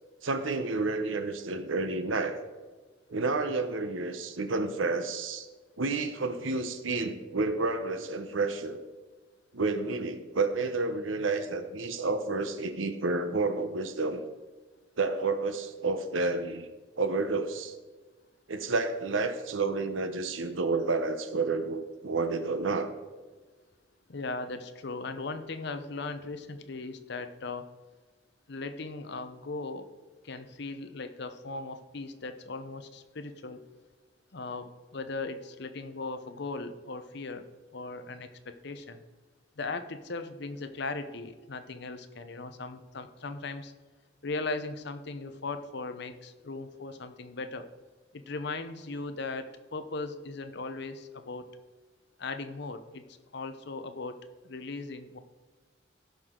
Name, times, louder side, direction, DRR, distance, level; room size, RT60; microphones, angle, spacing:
voice 1, 0.2-2.4 3.1-5.5 5.8-8.8 9.5-14.2 15.0-16.7 17.0-17.7 18.5-22.9, right 3 dB, 90° right, 9 dB, 0.9 m, -30 dB
voice 2, 24.1-27.7 28.5-29.9 30.2-33.6 34.3-37.5 37.7-39.0 39.6-43.7 44.2-47.7 48.1-51.4 52.2-54.2 54.4-55.2, left 3 dB, 60° left, 9 dB, 0.8 m, -38 dB
15.5 x 6.3 x 3.8 m, 1.3 s
head